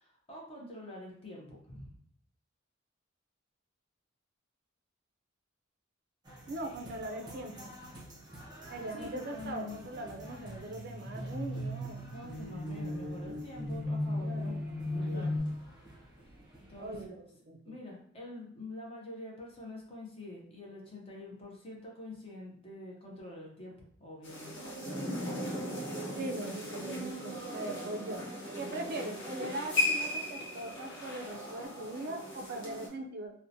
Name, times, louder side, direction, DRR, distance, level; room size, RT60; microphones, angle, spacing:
voice 1, 0.0-1.9 8.9-9.9 12.1-14.5 14.9-15.4 16.7-17.0 17.6-24.6 28.6-29.0, left 2 dB, 30° left, -2 dB, 0.6 m, -46 dB
sound 1, 6.2-17.1, right 1 dB, 20° right, 0.7 m, -52 dB
voice 2, 6.5-7.7 8.7-12.0 14.2-14.6 15.1-15.3 16.7-17.7 26.1-28.3 28.6-33.3, right 2 dB, 50° right, 3 dB, 0.3 m, -40 dB
sound 2, 10.1-15.4, left 1 dB, 5° right, 1.0 m, -36 dB
sound 3, 24.2-32.9, left 1 dB, 60° left, 0.8 m, -37 dB
2.7 x 2.0 x 2.6 m, 0.64 s
head